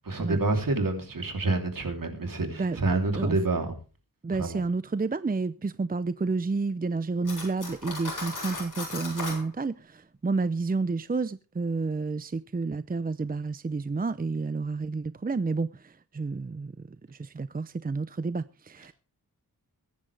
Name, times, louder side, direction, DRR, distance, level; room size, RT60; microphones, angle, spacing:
voice 1, 0.0-3.7 4.3-4.6, right 2 dB, 60° right, 3.3 m, -28 dB
voice 2, 4.2-18.9, right 4 dB, 25° right, 0.6 m, -30 dB
Cutlery silverware, 7.2-9.4, left 2 dB, 55° left, 7.9 m, -36 dB
22.5 x 10.5 x 3.4 m
wide cardioid pair, 85°, 37 cm